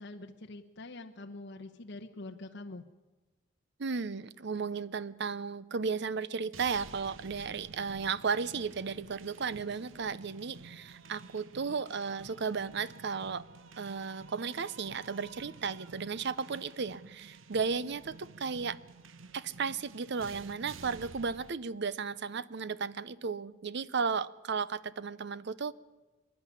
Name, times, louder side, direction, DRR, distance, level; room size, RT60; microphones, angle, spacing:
voice 1, 0.0-2.8, left 2 dB, 60° left, 3 dB, 1.1 m, -45 dB
voice 2, 3.8-13.5 13.8-18.8 19.3-25.7, right 5 dB, 60° right, 18 dB, 0.7 m, -34 dB
sound 1, 6.5-21.5, right 3 dB, 85° right, 1.0 m, -51 dB
25.5 x 11.0 x 9.9 m, 1.2 s
head